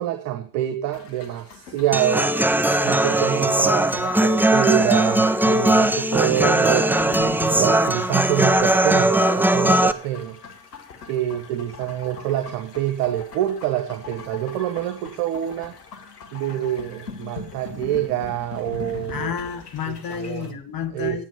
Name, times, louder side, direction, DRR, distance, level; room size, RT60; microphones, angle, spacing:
voice 1, 0.0-2.3 2.8-10.4 11.0-15.7 16.3-19.3 19.9-20.6 20.9-21.2, right 12 dB, 70° right, 1.3 m, -26 dB
sound 1, 0.9-20.5, left 5 dB, 85° left, 1.3 m, -41 dB
Human voice / Acoustic guitar, 1.9-9.9, right 1 dB, 5° right, 0.9 m, -19 dB
voice 2, 19.1-21.3, left 8 dB, 50° left, 1.9 m, -30 dB
10.0 x 9.0 x 7.0 m
figure-of-eight pair, 45°, 46 cm